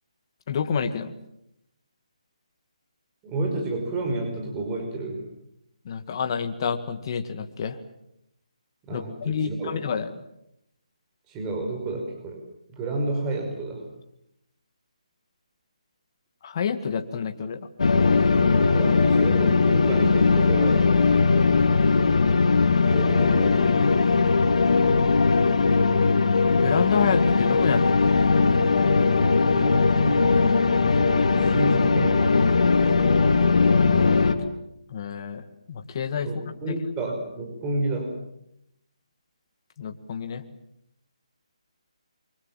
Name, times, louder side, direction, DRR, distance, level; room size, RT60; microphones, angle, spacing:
voice 1, 0.5-1.1 5.9-7.8 8.9-10.1 16.4-17.7 26.6-28.4 34.9-36.3 36.7-36.8 39.8-40.4, left 6 dB, 40° left, 7 dB, 2.0 m, -28 dB
voice 2, 3.2-5.2 8.9-9.8 11.3-12.4 12.7-13.9 18.6-20.9 22.9-24.0 29.4-30.5 31.3-32.3 36.2-38.1, right 2 dB, 20° right, 2 dB, 5.4 m, -30 dB
sound 1, 17.8-34.3, left 4 dB, 65° left, 2.9 m, -19 dB
27.5 x 24.5 x 7.6 m, 0.78 s
figure-of-eight pair, 155°, 4 cm